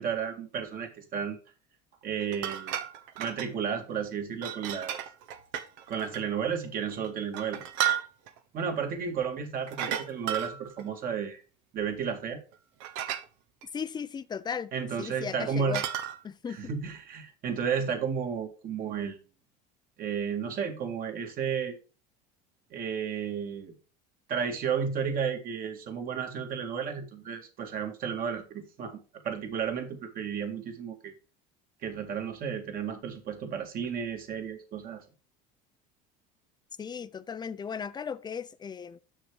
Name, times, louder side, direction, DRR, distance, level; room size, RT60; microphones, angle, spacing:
voice 1, 0.0-1.4 2.0-2.8 3.2-5.0 5.9-7.6 8.5-11.4 11.7-12.4 14.7-15.8 16.5-19.2 20.0-21.8 22.7-23.7 24.3-29.0 29.2-31.1 31.8-35.0, right 7 dB, 45° right, 2.2 m, -33 dB
sound 1, 2.2-3.5 4.4-6.3 6.9-8.4 9.7-10.9 12.5-12.6 12.8-13.2 13.6-13.7 15.3-16.2, right 10 dB, 75° right, 1.1 m, -33 dB
voice 2, 13.7-14.7 15.0-15.8 16.2-16.6 36.8-39.0, left 6 dB, 20° left, 0.6 m, -36 dB
6.7 x 6.2 x 4.8 m
supercardioid pair, 110°, 20 cm